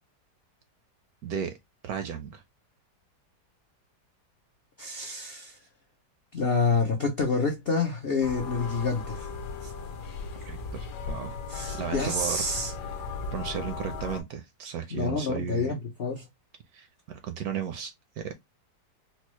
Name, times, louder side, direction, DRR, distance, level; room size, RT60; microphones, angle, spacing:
voice 1, 1.2-1.6 1.8-2.4 10.4-11.4 11.8-12.4 13.3-15.7 16.7-18.3, right 8 dB, 70° right, 0.9 m, -34 dB
voice 2, 4.8-5.6 6.3-9.3 9.6-9.7 11.5-12.7 14.9-16.2, left 4 dB, 80° left, 0.5 m, -28 dB
sound 1, 8.2-14.2, left 4 dB, 65° left, 1.0 m, -37 dB
4.3 x 2.0 x 2.9 m
omnidirectional pair, 1.9 m